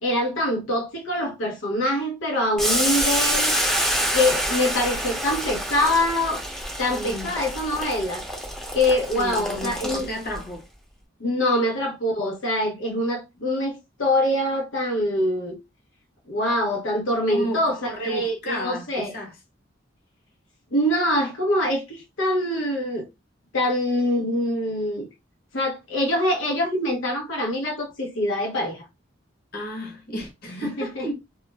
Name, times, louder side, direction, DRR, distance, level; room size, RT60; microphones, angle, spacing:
voice 1, 0.0-3.5 4.1-6.4 6.8-8.2 8.7-10.1 11.2-15.6 16.3-17.8 18.0-19.1 20.7-23.1 23.5-25.1 25.5-28.8 30.5-31.1, left 1 dB, 90° left, 0.7 m, -24 dB
Boiling, 2.6-10.4, equal, 5° left, 0.6 m, -27 dB
voice 2, 6.9-7.4 9.2-10.6 17.3-19.3 29.5-31.1, equal, 50° left, 1.0 m, -32 dB
2.3 x 2.0 x 3.2 m
head